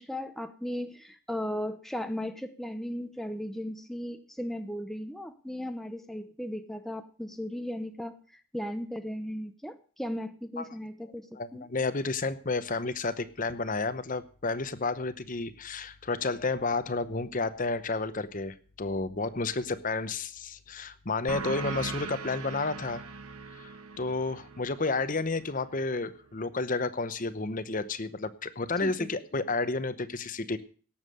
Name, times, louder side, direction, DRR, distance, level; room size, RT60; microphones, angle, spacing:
voice 1, 0.0-11.7 28.8-29.1, equal, ahead, 7 dB, 0.7 m, -36 dB
voice 2, 11.3-23.0 23.5-23.7 24.0-30.6, left 3 dB, 35° left, 13 dB, 0.8 m, -31 dB
sound 1, 21.3-26.5, right 4 dB, 80° right, 1.1 m, -41 dB
17.5 x 7.3 x 6.4 m, 0.41 s
head